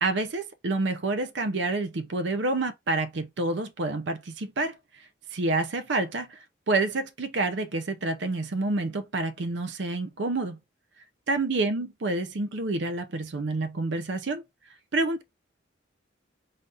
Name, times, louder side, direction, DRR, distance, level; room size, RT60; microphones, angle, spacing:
voice 1, 0.0-4.7 5.3-6.4 6.7-10.6 11.3-14.4 14.9-15.2, right 2 dB, 65° right, 0.6 m, -28 dB
4.0 x 2.5 x 3.3 m
head